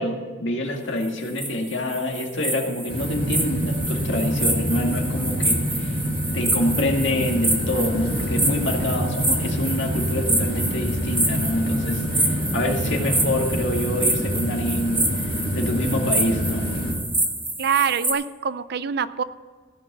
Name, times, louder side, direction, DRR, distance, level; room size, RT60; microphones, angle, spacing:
voice 1, 0.0-6.0 6.3-16.7, left 1 dB, 70° left, 1 dB, 2.0 m, -26 dB
sound 1, 1.0-18.1, right 2 dB, 10° right, 2.1 m, -27 dB
sound 2, 2.9-16.9, equal, 50° left, 2.2 m, -27 dB
voice 2, 17.6-19.2, right 7 dB, 55° right, 15 dB, 0.5 m, -24 dB
16.0 x 6.1 x 6.8 m, 1.5 s
head